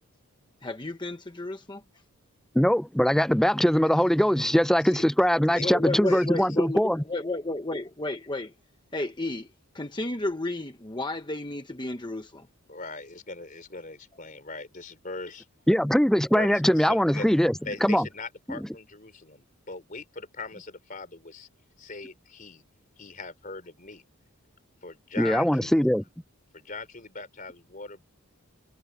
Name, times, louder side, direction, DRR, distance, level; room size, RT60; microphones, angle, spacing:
voice 1, 0.6-1.8 5.6-8.5 8.9-9.5 9.7-12.5, left 2 dB, 20° left, 1.0 m, -32 dB
voice 2, 2.6-7.0 15.7-17.5 17.8-18.1 25.2-26.0, equal, ahead, 0.4 m, -22 dB
voice 3, 6.1-6.6 12.7-15.5 16.3-17.4 17.7-21.5 21.8-22.6 23.0-24.0 24.8-25.7 26.5-28.0, left 3 dB, 35° left, 4.0 m, -40 dB
head